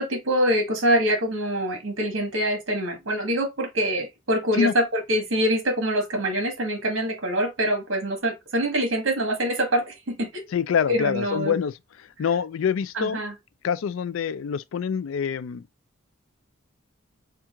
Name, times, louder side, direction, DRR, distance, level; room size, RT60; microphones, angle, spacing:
voice 1, 0.0-10.6 10.9-11.5 12.9-13.3, equal, 70° right, 1.5 m, -25 dB
voice 2, 10.5-13.2 13.6-15.7, left 7 dB, 75° left, 0.4 m, -26 dB
4.5 x 2.4 x 3.5 m
head